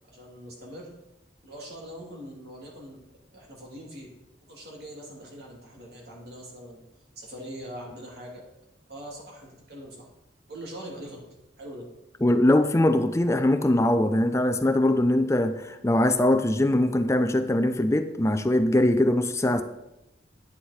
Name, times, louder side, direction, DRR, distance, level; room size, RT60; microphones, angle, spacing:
voice 1, 0.1-0.9 1.4-3.0 3.3-4.1 4.5-6.8 7.1-8.4 8.9-10.1 10.5-11.2 11.6-11.9, equal, 60° right, -2 dB, 2.9 m, -42 dB
voice 2, 12.2-19.6, left 1 dB, 15° left, 8 dB, 0.5 m, -22 dB
9.6 x 8.3 x 4.3 m, 0.93 s
head